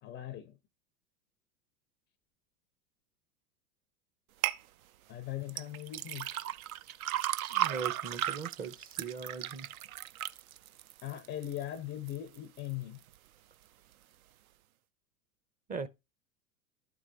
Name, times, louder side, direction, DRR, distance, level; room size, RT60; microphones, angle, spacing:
voice 1, 0.0-0.6 5.1-6.5 11.0-13.0, left 13 dB, 25° left, 0.4 m, -40 dB
sound 1, 4.4-4.6 5.5-11.6 12.1-12.6 13.1-13.2, right 13 dB, 70° right, 0.6 m, -35 dB
voice 2, 7.5-9.7 15.7-15.9, right 5 dB, 20° right, 0.6 m, -39 dB
12.5 x 4.6 x 2.6 m
figure-of-eight pair, 90°, 45 cm